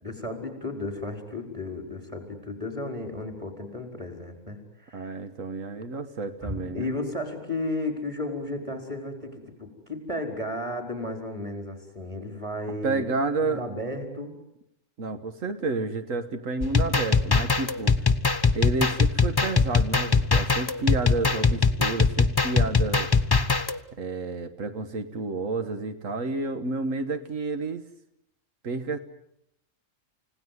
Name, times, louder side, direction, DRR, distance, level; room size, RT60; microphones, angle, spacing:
voice 1, 0.0-5.2 6.4-13.0 13.4-14.3, left 2 dB, 25° right, 5 dB, 5.0 m, -34 dB
voice 2, 4.9-6.9 12.8-13.6 15.0-18.0 18.5-23.1 24.0-27.8 28.6-29.0, right 3 dB, 85° right, 8 dB, 1.7 m, -30 dB
sound 1, 16.6-23.8, left 4 dB, 20° left, 1.0 m, -22 dB
29.5 x 17.5 x 9.6 m, 0.78 s
omnidirectional pair, 1.3 m